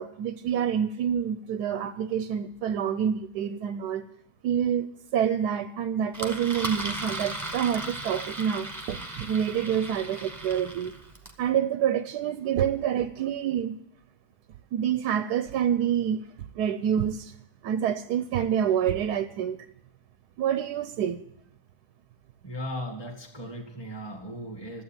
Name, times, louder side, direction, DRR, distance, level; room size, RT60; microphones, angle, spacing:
voice 1, 0.0-4.0 4.4-4.9 5.1-10.9 11.4-13.8 14.7-16.2 16.5-17.3 17.6-19.6 20.4-21.2, right 9 dB, 85° right, 11 dB, 1.2 m, -27 dB
Engine, 6.1-11.4, right 2 dB, 10° right, 1.2 m, -36 dB
voice 2, 22.4-24.8, equal, 15° left, 2 dB, 1.9 m, -37 dB
12.5 x 8.4 x 8.9 m, 0.78 s
omnidirectional pair, 1.7 m